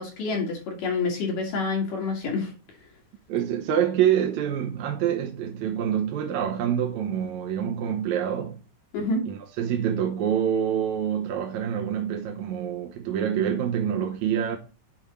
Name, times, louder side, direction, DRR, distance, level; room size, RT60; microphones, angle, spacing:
voice 1, 0.0-2.5 8.9-9.3, left 3 dB, 85° left, 3.8 m, -27 dB
voice 2, 3.3-8.6 9.3-14.6, right 9 dB, 70° right, 2.1 m, -26 dB
9.0 x 4.4 x 5.4 m
omnidirectional pair, 3.7 m